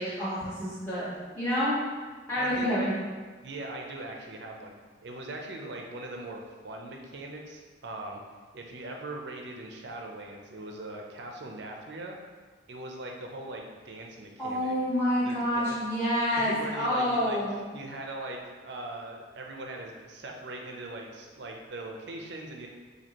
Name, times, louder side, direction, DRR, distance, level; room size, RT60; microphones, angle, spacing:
voice 1, 0.0-1.8 2.3-2.9 14.4-17.6, equal, 10° left, -15 dB, 1.0 m, -28 dB
voice 2, 2.4-2.7 3.4-4.7 5.0-8.2 8.5-12.2 12.7-14.7 15.3-15.6 16.2-22.7, right 2 dB, 60° right, 1 dB, 0.5 m, -40 dB
4.2 x 2.8 x 2.9 m, 1.4 s
head